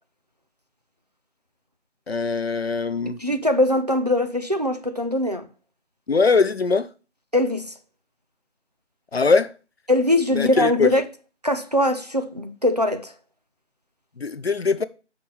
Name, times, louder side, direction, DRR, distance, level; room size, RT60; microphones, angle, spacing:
voice 1, 2.1-3.2 6.1-6.9 9.1-9.5 10.3-10.9 14.2-14.9, left 4 dB, 60° left, 0.6 m, -21 dB
voice 2, 3.1-5.5 7.3-7.7 9.9-11.0 11.4-13.1, left 1 dB, 35° right, 0.6 m, -22 dB
7.3 x 5.9 x 3.2 m
figure-of-eight pair, 170°, 36 cm